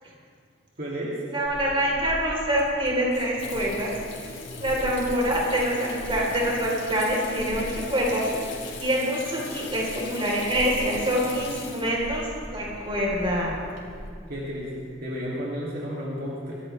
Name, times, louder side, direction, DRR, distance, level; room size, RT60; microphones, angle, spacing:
voice 1, 0.8-1.2 14.3-16.6, equal, 50° right, -6 dB, 2.5 m, -32 dB
voice 2, 1.3-3.9 4.6-8.5 8.8-13.5, equal, 30° right, -3 dB, 3.6 m, -25 dB
Water tap faucet / Sink (filling or washing), 1.4-14.1, left 2 dB, 85° left, 3.2 m, -38 dB
23.5 x 15.0 x 3.3 m, 2.2 s
head